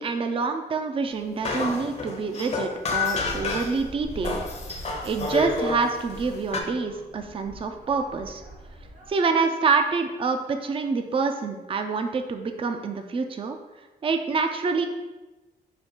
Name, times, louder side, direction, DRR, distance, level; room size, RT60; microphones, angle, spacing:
voice 1, 0.0-4.4 5.0-8.4 9.1-13.6 14.0-14.9, right 4 dB, 30° right, 6 dB, 0.4 m, -26 dB
sound 1, 1.4-3.8 4.2-6.6, left 4 dB, 40° left, 0.7 m, -29 dB
sound 2, 3.2-9.1, right 1 dB, 50° right, 1.4 m, -43 dB
5.0 x 2.3 x 4.3 m, 1.1 s
cardioid pair, 95°, 17 cm